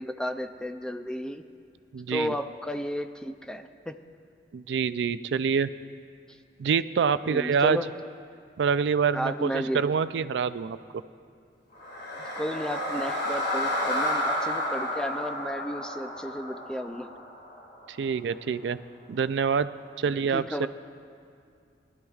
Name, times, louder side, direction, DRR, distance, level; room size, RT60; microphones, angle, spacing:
voice 1, 0.0-1.4 2.1-4.0 7.2-7.9 9.1-9.8 12.2-17.1 20.1-20.7, equal, 5° left, 8 dB, 0.4 m, -33 dB
voice 2, 1.9-2.4 4.5-5.7 6.6-7.9 8.6-10.8 17.9-18.8 19.1-19.7 20.0-20.7, right 6 dB, 75° right, 14 dB, 0.4 m, -26 dB
sound 1, 11.7-17.9, left 1 dB, 65° left, 2.1 m, -31 dB
20.5 x 12.0 x 2.4 m, 2.3 s
head